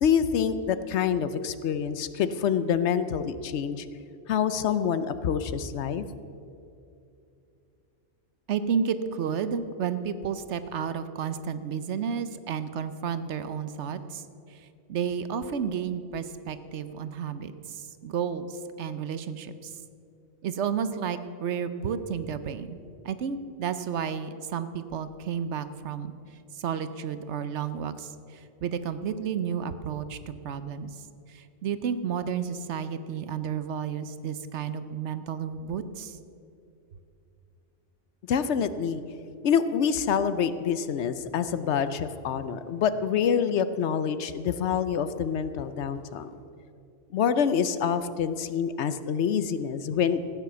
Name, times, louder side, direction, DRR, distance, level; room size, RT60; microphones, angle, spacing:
voice 1, 0.0-3.9 4.3-6.0 38.3-39.0 39.4-46.4 47.1-50.2, left 7 dB, 70° left, 12 dB, 0.9 m, -26 dB
voice 2, 8.5-14.2 14.5-14.6 14.9-19.7 20.4-22.8 23.0-26.1 26.5-30.9 31.3-36.2, right 7 dB, 70° right, 12 dB, 1.0 m, -32 dB
15.0 x 9.2 x 6.8 m, 2.6 s
omnidirectional pair, 1.2 m